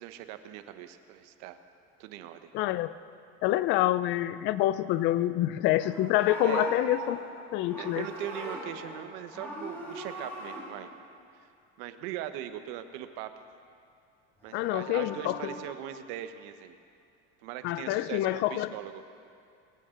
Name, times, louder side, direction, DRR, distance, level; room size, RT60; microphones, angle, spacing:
voice 1, 0.0-1.6 2.0-2.5 6.4-6.6 7.8-10.9 11.4-11.5 11.8-13.3 14.4-16.8 17.4-19.0, right 12 dB, 75° right, 9 dB, 1.1 m, -40 dB
voice 2, 2.5-2.9 3.4-7.2 7.5-8.1 14.5-15.5 17.6-18.7, left 15 dB, 40° left, 15 dB, 0.4 m, -27 dB
Livestock farm animals working animals, 5.6-9.0 9.3-10.6 14.4-15.6, right 1 dB, 10° left, 5.4 m, -38 dB
23.5 x 16.0 x 3.8 m, 2.4 s
cardioid pair, 175°, 30 cm